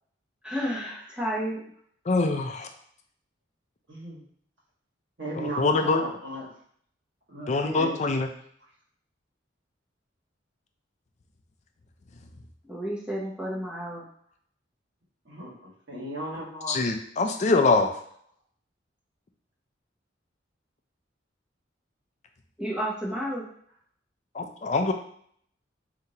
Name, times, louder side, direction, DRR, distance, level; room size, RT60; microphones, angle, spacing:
voice 1, 0.4-1.6 5.8-5.9 12.7-14.1 22.6-23.5, equal, 5° right, -6 dB, 0.7 m, -31 dB
voice 2, 2.1-2.7 5.6-6.0 7.5-8.3 16.7-17.9 24.3-24.9, left 3 dB, 40° left, 5 dB, 0.4 m, -24 dB
voice 3, 3.9-4.2 5.2-6.5 7.3-8.0 15.2-16.8, right 1 dB, 65° right, -5 dB, 1.6 m, -36 dB
5.0 x 2.9 x 2.8 m, 0.63 s
head